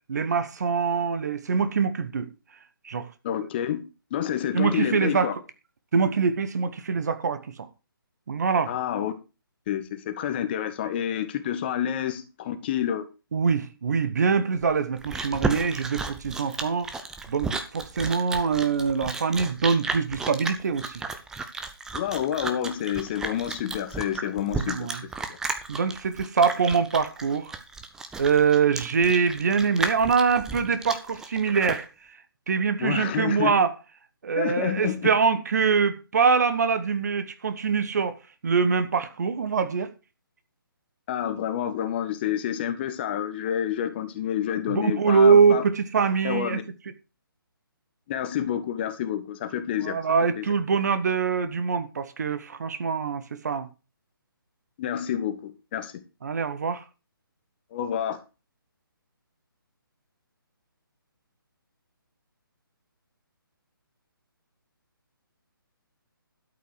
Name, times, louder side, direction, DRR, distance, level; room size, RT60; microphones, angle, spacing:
voice 1, 0.1-2.3 2.8-3.1 4.5-5.3 5.9-7.7 8.3-8.7 13.3-16.9 17.3-21.0 24.6-25.0 25.7-27.5 28.2-31.8 32.5-33.7 34.2-38.2 38.4-39.9 44.7-46.6 49.8-53.7 56.2-56.8, right 5 dB, 45° right, 1.2 m, -24 dB
voice 2, 3.2-3.8 4.1-5.3 8.7-9.1 9.7-13.1 21.9-24.9 25.3-25.4 32.8-33.5 34.4-35.1 41.1-45.6 46.2-46.6 48.1-50.0 50.4-50.5 54.8-55.9 57.7-58.2, left 10 dB, 25° left, 1.3 m, -28 dB
Chewing mastication, 14.6-31.9, right 4 dB, 5° right, 0.7 m, -33 dB
12.5 x 5.6 x 6.4 m
figure-of-eight pair, 140°, 12 cm